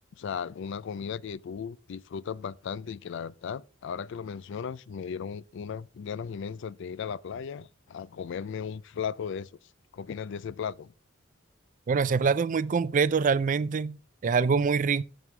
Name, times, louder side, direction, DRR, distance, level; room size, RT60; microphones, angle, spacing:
voice 1, 0.2-9.5 9.9-10.9, left 7 dB, 65° left, 0.4 m, -36 dB
voice 2, 11.9-15.0, right 5 dB, 40° right, 0.4 m, -25 dB
11.0 x 7.3 x 3.3 m
head